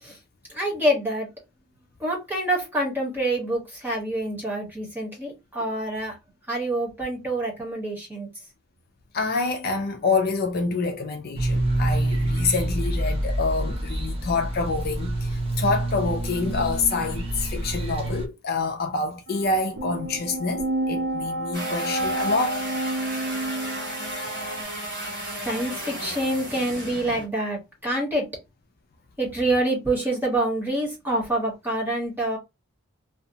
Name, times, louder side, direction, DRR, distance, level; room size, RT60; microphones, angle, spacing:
voice 1, 0.5-1.3 2.0-6.1 6.5-8.3 25.4-28.2 29.2-32.4, right 1 dB, 10° right, 1.1 m, -26 dB
voice 2, 9.1-22.6, left 3 dB, 45° left, 0.3 m, -27 dB
sound 1, 11.4-18.3, right 1 dB, 25° right, 0.5 m, -27 dB
sound 2, 19.3-24.6, right 1 dB, 80° right, 0.7 m, -30 dB
sound 3, 21.5-27.3, right 1 dB, 50° right, 1.5 m, -34 dB
2.7 x 2.1 x 2.7 m
head